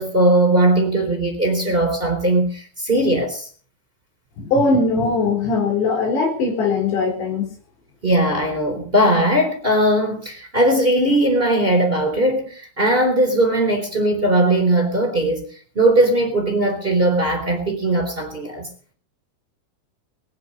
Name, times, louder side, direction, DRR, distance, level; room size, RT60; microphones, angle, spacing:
voice 1, 0.0-3.5 8.0-15.5 15.8-18.7, right 1 dB, 15° right, 3 dB, 3.7 m, -19 dB
voice 2, 4.4-7.5, left 3 dB, 85° left, 4 dB, 6.2 m, -20 dB
22.0 x 9.9 x 5.5 m, 0.43 s
omnidirectional pair, 4.9 m